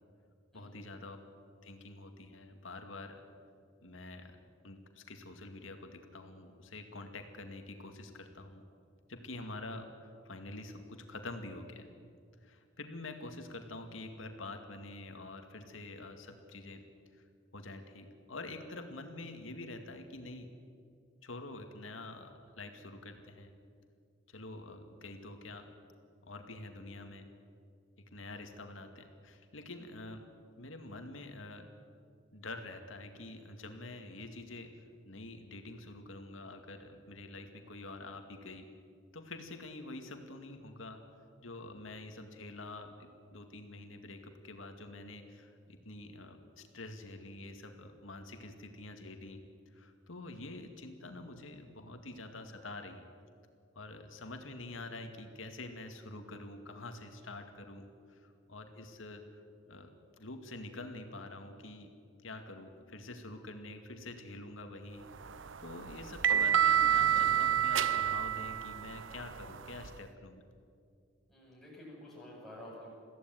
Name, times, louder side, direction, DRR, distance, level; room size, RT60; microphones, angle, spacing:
voice 1, 0.5-1.2 1.6-3.2 3.8-8.6 9.1-9.9 10.2-11.9 12.4-16.8 17.1-17.2 17.5-20.5 21.2-23.5 24.3-25.7 26.2-27.3 28.1-30.3 30.6-31.7 32.3-34.7 35.0-38.7 39.1-41.0 41.4-49.4 49.7-53.0 53.8-59.9 60.2-61.9 62.2-65.1 65.6-70.4, left 2 dB, 85° left, 5 dB, 2.3 m, -47 dB
sound 1, 65.1-70.0, right 9 dB, 70° right, 0.7 m, -29 dB
voice 2, 71.3-72.9, left 1 dB, ahead, -6 dB, 8.0 m, -50 dB
22.0 x 15.5 x 9.2 m, 2.3 s
head